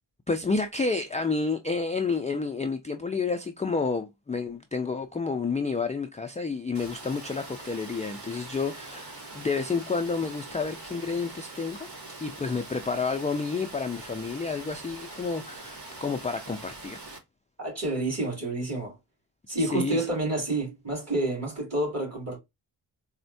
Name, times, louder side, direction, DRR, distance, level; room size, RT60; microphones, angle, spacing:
voice 1, 0.3-11.9 12.2-17.0 19.6-20.1, left 4 dB, 20° left, 0.3 m, -30 dB
Water, 6.7-17.2, right 2 dB, 65° right, 1.3 m, -43 dB
voice 2, 17.6-18.9 19.5-22.4, right 2 dB, 35° right, 2.3 m, -29 dB
4.2 x 2.1 x 2.5 m
wide cardioid pair, 85°, 44 cm